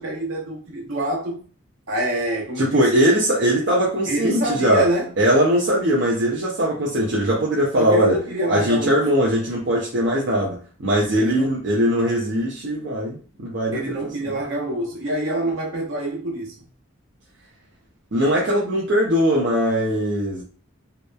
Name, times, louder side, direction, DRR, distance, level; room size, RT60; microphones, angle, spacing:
voice 1, 0.0-1.4 1.9-2.9 4.1-5.1 7.7-9.2 11.1-11.6 13.7-16.5, right 1 dB, 80° right, 1.0 m, -26 dB
voice 2, 2.6-4.8 5.2-8.2 8.5-13.9 18.1-20.4, equal, 60° right, 0.5 m, -20 dB
2.8 x 2.1 x 2.2 m
head